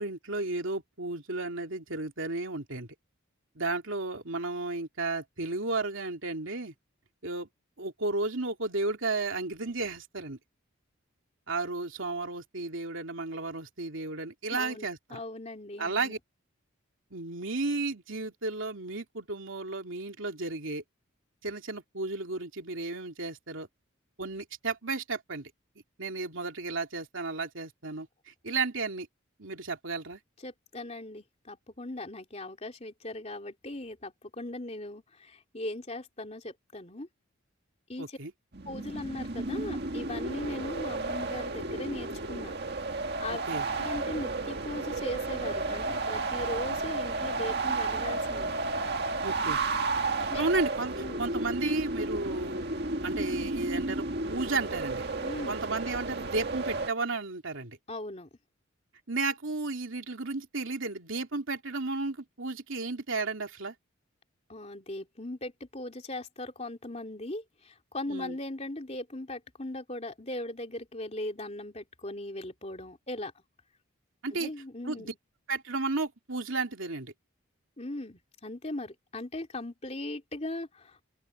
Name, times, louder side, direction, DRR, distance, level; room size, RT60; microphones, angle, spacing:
voice 1, 0.0-2.9 3.5-6.7 7.2-7.5 7.8-10.4 11.5-15.2 15.8-16.2 17.1-20.8 21.4-23.7 24.2-25.5 26.0-29.1 29.4-30.2 38.0-38.3 43.3-43.7 49.2-49.6 50.2-52.6 53.0-55.0 55.5-57.8 59.1-63.7 68.1-68.4 74.2-74.5 74.8-75.1 75.5-77.1, right 3 dB, 70° right, 2.9 m, -33 dB
voice 2, 14.5-16.1 30.4-37.1 37.9-38.2 38.7-42.6 43.2-43.4 43.8-48.6 50.3-50.4 51.0-51.2 55.2-55.5 57.9-58.3 64.5-73.3 74.3-75.1 77.8-81.0, left 1 dB, 30° left, 3.1 m, -39 dB
sound 1, 38.5-56.9, right 3 dB, 50° right, 1.9 m, -32 dB
open air
head